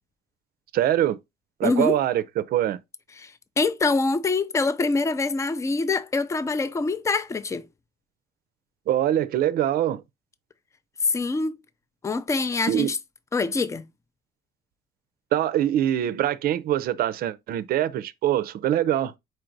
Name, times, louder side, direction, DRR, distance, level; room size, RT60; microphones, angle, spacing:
voice 1, 0.7-1.2 1.6-2.8 8.9-10.0 12.7-12.9 15.3-19.1, right 12 dB, 65° right, 0.5 m, -23 dB
voice 2, 1.6-2.0 3.2-7.7 11.0-11.6 12.0-13.0 13.3-13.9, left 3 dB, 15° left, 0.5 m, -25 dB
4.5 x 2.6 x 4.5 m
cardioid pair, 110°, 17 cm